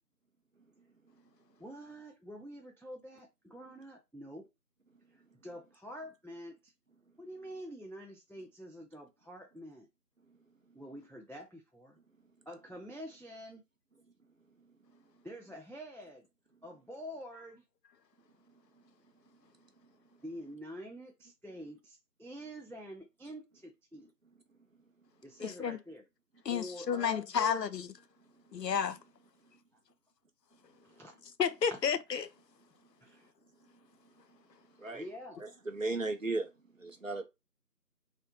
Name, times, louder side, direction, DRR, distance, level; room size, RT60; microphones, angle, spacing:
voice 1, 1.6-4.4 5.1-6.7 7.2-9.9 10.7-12.0 12.5-13.6 15.2-16.3 16.6-17.6 20.2-24.1 25.2-26.0 26.5-27.6 30.8-31.1 33.0-33.3 34.9-35.4, equal, 5° left, 0.3 m, -47 dB
voice 2, 25.4-25.8 26.5-27.9 28.5-29.0 31.4-32.3, left 7 dB, 80° left, 0.5 m, -31 dB
voice 3, 35.4-36.5 36.8-37.3, right 3 dB, 55° right, 0.5 m, -35 dB
2.2 x 2.1 x 2.9 m
figure-of-eight pair, 170°, 49 cm